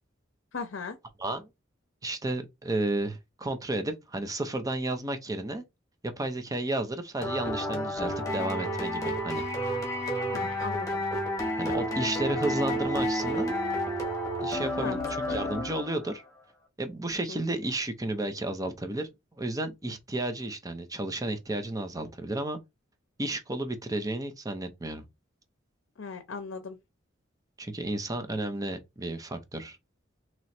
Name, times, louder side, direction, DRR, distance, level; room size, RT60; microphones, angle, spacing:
voice 1, 0.5-1.0 10.3-11.0 14.7-15.0 15.3-15.4 17.3-17.4 26.0-26.8, left 4 dB, 70° left, 0.6 m, -37 dB
voice 2, 1.2-1.5 2.0-5.6 6.0-9.4 11.6-13.5 14.4-16.2 16.8-19.1 19.4-22.6 23.2-25.0 27.6-29.8, right 2 dB, 20° right, 0.6 m, -32 dB
sound 1, 7.2-16.1, equal, 15° left, 1.5 m, -30 dB
3.0 x 3.0 x 4.2 m
head